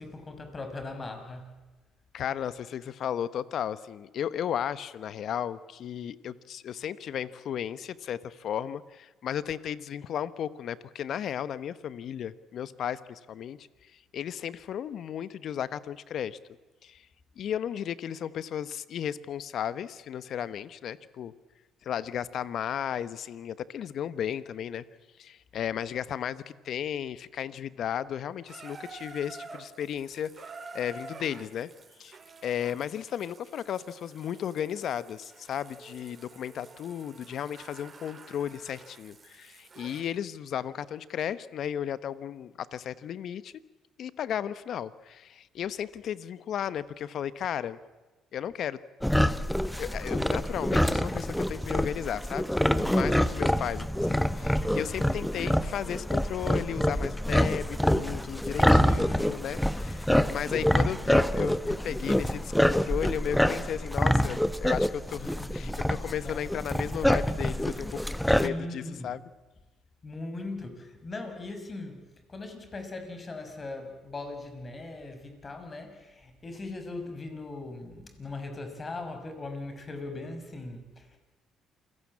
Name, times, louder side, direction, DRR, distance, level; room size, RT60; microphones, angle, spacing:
voice 1, 0.0-1.5 65.4-66.0 66.2-66.4 68.4-69.1 70.0-72.0 72.3-81.2, left 2 dB, 35° left, 7 dB, 5.5 m, -39 dB
voice 2, 2.1-13.7 14.1-16.4 16.8-17.1 17.4-21.3 21.8-24.8 25.2-31.7 32.0-32.2 32.4-43.5 44.0-47.8 48.3-48.8 49.2-49.3 49.8-69.2, left 9 dB, 60° left, 16 dB, 1.0 m, -34 dB
Water tap faucet / Bathtub (filling or washing), 28.5-40.1 41.0-41.1, right 4 dB, 40° right, 2.6 m, -49 dB
sound 1, 49.0-68.5, equal, 5° left, 1.3 m, -26 dB
28.0 x 18.0 x 8.6 m, 1.2 s
hypercardioid pair, 60°, 0 cm